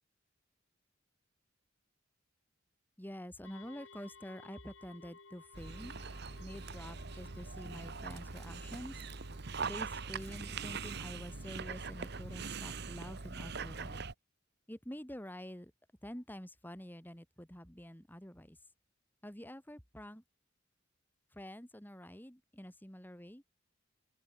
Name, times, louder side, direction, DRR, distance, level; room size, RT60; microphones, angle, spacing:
voice 1, 3.0-5.9 6.4-9.0 9.6-14.0 14.7-15.7 16.0-18.6 19.2-20.2 21.3-23.4, equal, 10° left, 3.3 m, -48 dB
sound 1, 3.4-13.3, left 3 dB, 80° left, 4.2 m, -60 dB
Dog, 5.5-14.1, right 4 dB, 55° right, 1.1 m, -42 dB
open air
head